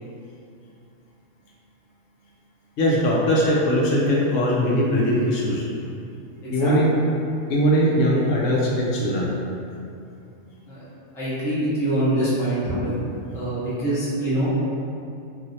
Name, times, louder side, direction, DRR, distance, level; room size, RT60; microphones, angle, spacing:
voice 1, 2.8-5.6 6.5-6.9 7.5-9.3, equal, 75° left, -4 dB, 0.9 m, -20 dB
voice 2, 6.4-6.8 10.7-10.9 11.1-12.9 13.3-14.5, right 1 dB, 5° left, -11 dB, 0.5 m, -24 dB
3.0 x 2.6 x 2.6 m, 2.6 s
omnidirectional pair, 1.4 m